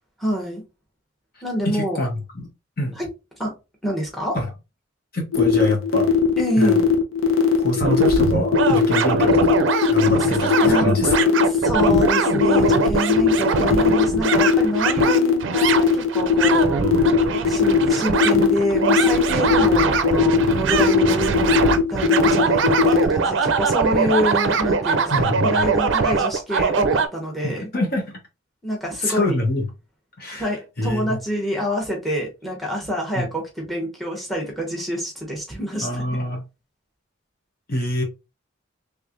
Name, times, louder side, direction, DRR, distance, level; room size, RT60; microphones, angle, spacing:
voice 1, 0.2-0.6 1.4-2.0 3.0-3.1 3.4-3.5 3.8-4.4 6.4-6.8 10.6-16.8 17.5-21.5 21.9-27.7 28.6-29.3 30.4-36.0, equal, ahead, 1.1 m, -26 dB
voice 2, 1.6-2.5 2.8-3.0 4.3-4.5 5.1-6.1 6.6-6.8 7.6-11.3 25.1-25.6 27.4-28.2 29.0-29.6 30.2-30.5 30.8-31.2 33.2-33.3 35.8-36.4 37.7-38.0, left 1 dB, 45° left, 0.9 m, -25 dB
sound 1, 5.3-23.0, left 9 dB, 85° left, 0.8 m, -18 dB
sound 2, 7.8-27.1, right 5 dB, 65° right, 0.5 m, -22 dB
3.4 x 3.3 x 2.5 m
head